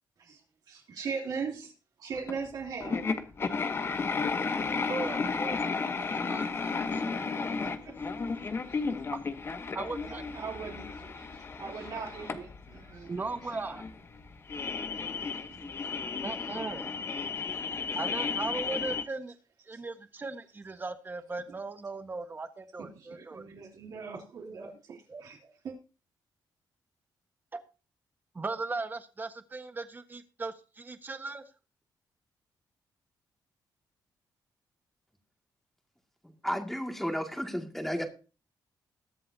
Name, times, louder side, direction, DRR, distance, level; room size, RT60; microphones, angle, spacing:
voice 1, 0.7-1.7 2.0-3.1 7.2-7.5 7.8-7.9 8.7-9.0 10.1-13.1 14.9-15.7 16.6-16.8 17.2-17.3 17.6-17.8 19.7-19.8 22.8-25.7, right 5 dB, 65° right, -2 dB, 3.2 m, -40 dB
sound 1, 2.3-2.4 2.8-19.0, left 4 dB, 35° left, 1.1 m, -33 dB
voice 2, 4.7-5.6 6.0-7.0 9.1-9.2 9.7-10.2 13.1-13.8 16.2-16.9 17.9-19.3 19.6-23.4 24.5-24.7 25.1-25.2 27.5-27.6 28.3-31.4, right 3 dB, 25° right, 9 dB, 1.4 m, -38 dB
voice 3, 36.2-38.0, equal, 5° left, 4 dB, 2.2 m, -33 dB
21.5 x 7.6 x 2.8 m, 0.33 s
cardioid pair, 125°, 7 cm